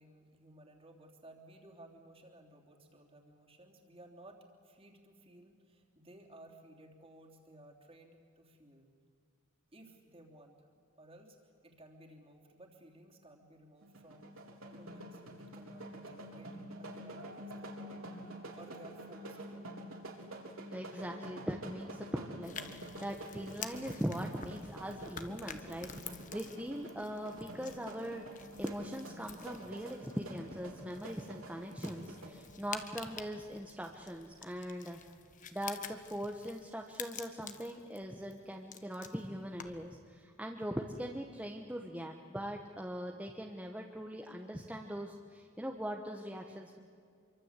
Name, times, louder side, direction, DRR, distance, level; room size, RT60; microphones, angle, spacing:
voice 1, 0.0-8.9 9.7-10.6 11.0-18.2 18.6-19.7 19.9-20.0, right 1 dB, 25° right, 1 dB, 3.3 m, -57 dB
sound 1, 13.8-32.3, right 1 dB, 70° right, 4.0 m, -48 dB
voice 2, 20.7-35.0 35.5-46.8, equal, 5° right, 2 dB, 1.2 m, -41 dB
sound 2, 22.4-39.9, left 7 dB, 35° left, 1.4 m, -50 dB
27.0 x 24.0 x 8.3 m, 2.3 s
head